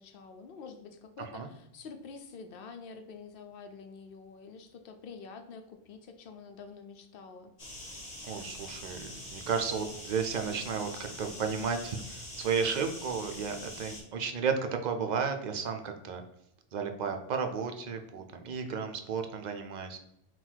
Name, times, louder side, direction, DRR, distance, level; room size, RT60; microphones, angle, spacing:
voice 1, 0.0-7.5, left 5 dB, 65° left, 6 dB, 0.7 m, -47 dB
sound 1, 7.6-14.0, left 1 dB, 40° left, 1.2 m, -44 dB
voice 2, 8.2-14.5 14.8-16.2 16.7-20.0, right 6 dB, 55° right, 6 dB, 0.5 m, -33 dB
3.9 x 2.3 x 4.3 m, 0.79 s
omnidirectional pair, 1.0 m